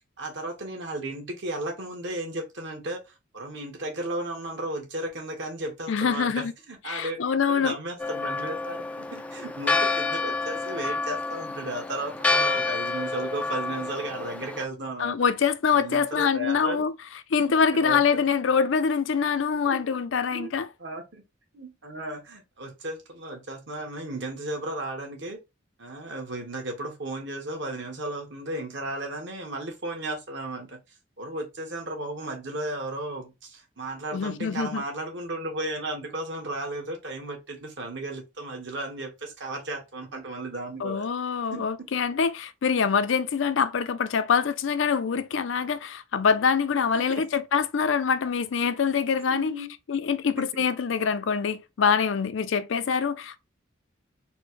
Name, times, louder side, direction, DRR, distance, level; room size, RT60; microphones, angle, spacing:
voice 1, 0.2-15.3 15.7-16.9 17.5-18.2 19.6-19.8 20.3-20.5 20.8-21.2 21.5-25.4 25.8-30.8 31.2-41.1 41.5-41.9 42.8-42.9 46.9-47.2 49.3-49.7 50.4-50.5, right 1 dB, 60° right, 1.4 m, -35 dB
voice 2, 5.9-6.5 6.9-7.8 15.0-16.9 17.3-20.7 34.1-34.8 40.8-49.5 49.9-53.4, left 6 dB, 70° left, 0.4 m, -25 dB
Church bell, 8.0-14.7, left 3 dB, 5° left, 0.3 m, -29 dB
4.3 x 2.1 x 4.5 m
head